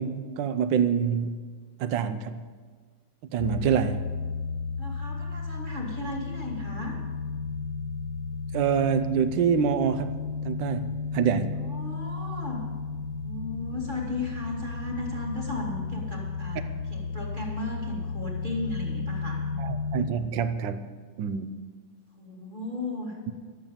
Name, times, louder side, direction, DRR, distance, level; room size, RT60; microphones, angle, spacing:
voice 1, 0.0-1.4 1.8-2.4 3.3-4.0 8.5-10.2 10.4-11.6 19.6-20.8 21.2-21.5, right 7 dB, 70° right, 11 dB, 1.4 m, -26 dB
sound 1, 3.4-20.1, left 4 dB, 55° left, 1.4 m, -33 dB
voice 2, 4.8-7.0 11.5-12.6 13.2-19.4 22.1-23.2, left 2 dB, 25° right, -2 dB, 2.4 m, -35 dB
11.5 x 8.2 x 8.7 m, 1.5 s
omnidirectional pair, 2.3 m